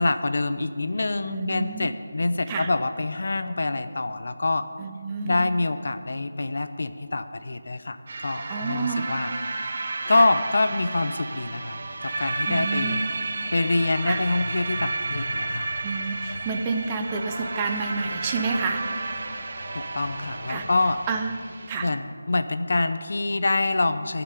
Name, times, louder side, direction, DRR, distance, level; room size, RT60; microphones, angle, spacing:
voice 1, 0.0-4.7 5.2-9.3 10.1-13.0 13.5-15.7 19.7-21.0 21.8-24.2, left 2 dB, 60° left, 10 dB, 0.7 m, -26 dB
voice 2, 1.3-1.9 2.5-2.7 4.8-5.4 8.5-9.1 10.1-10.3 12.5-13.0 14.0-14.2 15.8-18.9 20.5-20.7 21.1-21.3 21.7-21.9, right 4 dB, 20° right, 4 dB, 0.7 m, -29 dB
sound 1, 8.1-21.7, right 3 dB, 45° right, 0.9 m, -32 dB
sound 2, 11.7-21.2, left 1 dB, 45° left, 2.3 m, -42 dB
14.5 x 6.0 x 9.5 m, 2.1 s
figure-of-eight pair, 170°, 0 cm